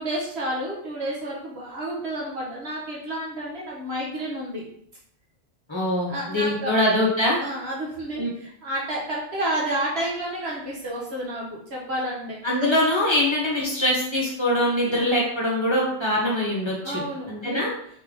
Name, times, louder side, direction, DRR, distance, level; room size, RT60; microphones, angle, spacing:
voice 1, 0.0-4.6 6.1-6.7 7.4-12.4 14.8-15.1 16.8-17.7, right 1 dB, 65° right, -4 dB, 1.3 m, -30 dB
voice 2, 5.7-7.4 8.2-8.3 12.4-17.0 17.3-17.7, left 1 dB, 25° left, -4 dB, 1.2 m, -23 dB
3.8 x 3.3 x 3.7 m, 0.67 s
omnidirectional pair, 1.2 m